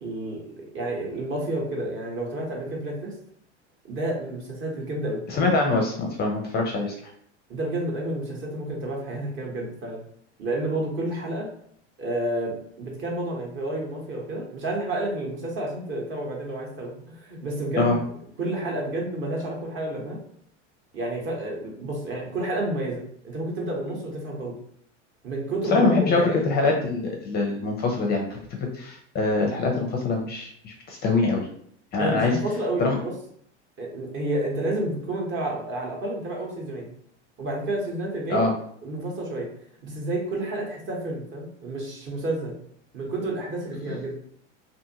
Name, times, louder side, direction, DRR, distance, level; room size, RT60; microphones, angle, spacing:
voice 1, 0.0-0.4 0.7-3.1 3.9-5.2 7.5-10.0 10.4-11.5 12.0-18.0 18.4-20.2 20.9-24.5 25.2-26.5 32.0-33.1 33.8-36.9 37.4-38.5 38.8-39.5 39.8-42.5 42.9-44.1, right 1 dB, 35° right, -1 dB, 0.9 m, -30 dB
voice 2, 5.3-7.0 17.8-18.0 25.7-28.4 28.7-31.5 31.9-32.4 32.8-33.0 38.3-38.5 43.9-44.0, left 3 dB, 30° left, 1 dB, 0.5 m, -24 dB
2.6 x 2.5 x 2.7 m, 0.64 s
hypercardioid pair, 105°, 36 cm